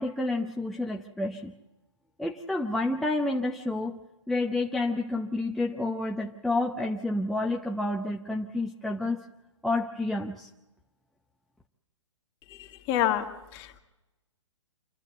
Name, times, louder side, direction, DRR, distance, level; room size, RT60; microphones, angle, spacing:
voice 1, 0.0-1.5 2.2-4.0 4.3-9.2 9.6-10.5, left 2 dB, ahead, -1 dB, 0.8 m, -29 dB
voice 2, 12.5-13.3 13.5-13.8, left 12 dB, 30° left, 4 dB, 2.0 m, -28 dB
27.5 x 11.5 x 8.1 m, 1.0 s
hypercardioid pair, 135°, 16 cm